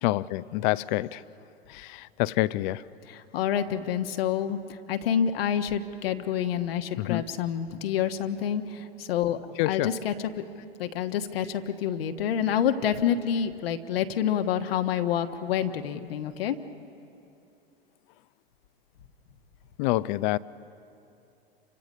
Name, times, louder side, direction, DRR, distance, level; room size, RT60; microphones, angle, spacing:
voice 1, 0.0-1.2 1.7-2.8 7.0-7.2 9.6-9.9 19.8-20.4, left 18 dB, 50° left, 18 dB, 0.7 m, -27 dB
voice 2, 3.1-4.6 4.9-9.4 9.6-10.1 10.8-16.6, left 9 dB, 70° left, 7 dB, 1.4 m, -28 dB
29.0 x 25.0 x 5.4 m, 2.8 s
hypercardioid pair, 90°, 31 cm